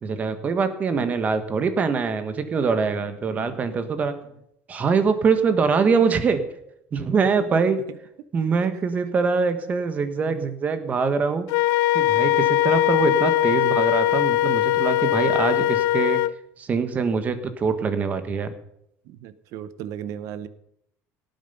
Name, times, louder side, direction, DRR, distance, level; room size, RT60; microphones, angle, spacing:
voice 1, 0.0-4.2 4.7-6.4 6.9-7.8 8.3-11.5 11.9-16.2 16.6-18.5, right 5 dB, 25° right, 10 dB, 1.4 m, -23 dB
voice 2, 10.2-10.6 12.9-13.1 13.5-13.8 15.6-15.8 19.1-20.5, right 10 dB, 60° right, 14 dB, 1.0 m, -37 dB
Wind instrument woodwind instrument, 11.5-16.3, left 15 dB, 65° left, 0.5 m, -21 dB
17.5 x 9.1 x 5.5 m, 0.76 s
cardioid pair, 150°, 6 cm